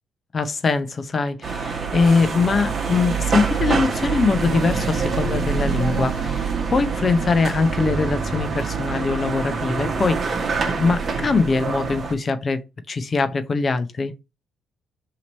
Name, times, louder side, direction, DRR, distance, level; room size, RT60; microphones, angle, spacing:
voice 1, 0.3-12.6 12.9-14.1, left 4 dB, 45° left, 0.6 m, -22 dB
sound 1, 1.4-12.1, right 5 dB, 50° right, 0.9 m, -25 dB
3.0 x 2.9 x 4.0 m
supercardioid pair, 55°, 0 cm